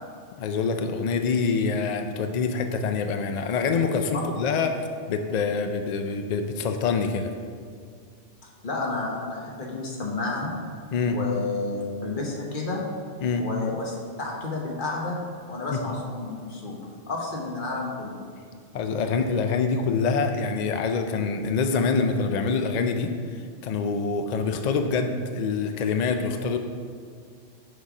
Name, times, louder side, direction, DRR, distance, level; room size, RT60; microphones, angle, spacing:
voice 1, 0.4-4.8 5.1-7.3 10.9-11.2 13.2-13.5 15.7-16.0 18.7-26.6, left 5 dB, 70° left, 6 dB, 0.4 m, -25 dB
voice 2, 8.6-10.5 11.1-12.8 13.4-15.2 15.5-16.8 17.1-18.2, left 3 dB, 45° left, -2 dB, 1.3 m, -31 dB
6.5 x 5.6 x 4.9 m, 2.1 s
omnidirectional pair, 1.2 m